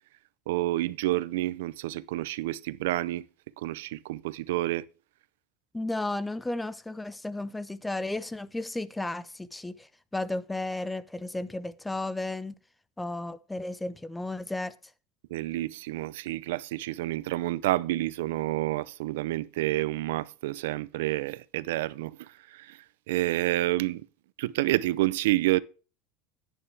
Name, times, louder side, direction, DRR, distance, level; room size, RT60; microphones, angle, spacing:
voice 1, 0.5-3.2 3.6-4.9 15.3-22.8 23.1-24.1 24.4-25.6, right 16 dB, 85° right, 0.5 m, -29 dB
voice 2, 5.7-12.5 13.0-14.7, left 2 dB, 5° left, 0.5 m, -33 dB
11.0 x 9.0 x 3.3 m
supercardioid pair, 155°, 0 cm